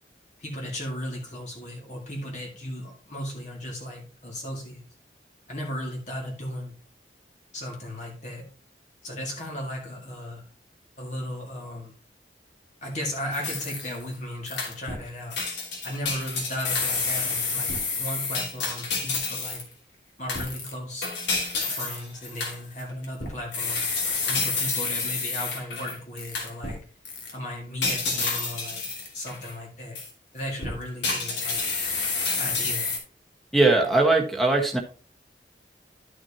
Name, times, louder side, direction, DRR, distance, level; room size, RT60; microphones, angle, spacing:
voice 1, 0.4-4.8 5.5-6.7 7.5-8.5 9.0-10.4 11.0-11.9 12.8-15.4 15.8-19.6 20.2-21.1 21.6-23.8 24.3-26.8 27.3-28.8 29.1-30.0 30.3-31.6 32.4-32.9, left 1 dB, 40° left, -1 dB, 2.0 m, -35 dB
sound 1, 13.3-14.1 14.5-15.0 15.3-19.7 20.3-26.8 27.1-27.3 27.8-29.5 30.0-30.1 30.6-33.0, left 4 dB, 80° left, 2.8 m, -29 dB
voice 2, 33.5-34.8, right 2 dB, ahead, 3 dB, 1.3 m, -20 dB
12.0 x 6.2 x 2.8 m, 0.37 s
head